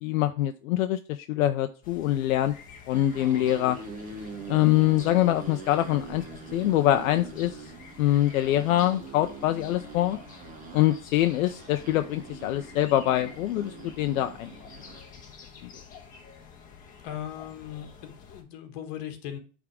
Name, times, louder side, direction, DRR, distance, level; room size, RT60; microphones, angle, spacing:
voice 1, 0.0-2.5 2.9-3.8 4.5-6.2 6.5-7.7 8.0-10.2 10.7-14.5 15.6-15.7, left 14 dB, 70° left, 8 dB, 0.7 m, -24 dB
sound 1, 1.8-18.4, left 6 dB, 20° left, 1.3 m, -49 dB
sound 2, 2.7-15.1, right 4 dB, 20° right, 1.1 m, -43 dB
voice 2, 17.0-19.4, left 10 dB, 45° left, 5 dB, 1.6 m, -38 dB
8.4 x 3.7 x 4.8 m, 0.39 s
supercardioid pair, 160°, 42 cm